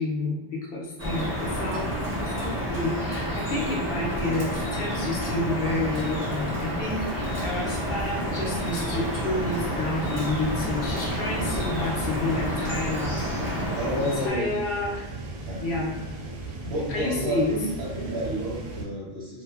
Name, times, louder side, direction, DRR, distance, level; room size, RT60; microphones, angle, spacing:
voice 1, 0.0-1.9 2.2-13.6 14.0-15.1 15.6-16.0 16.9-17.5, left 2 dB, 60° left, -3 dB, 0.6 m, -30 dB
Drip, 1.0-14.3, equal, 10° right, 0.6 m, -29 dB
sound 1, 7.2-18.8, right 2 dB, 85° right, 1.0 m, -37 dB
voice 2, 13.8-14.4 15.5-15.6 16.6-19.4, equal, 55° right, -6 dB, 1.0 m, -30 dB
2.5 x 2.5 x 2.3 m, 1.0 s
omnidirectional pair, 1.4 m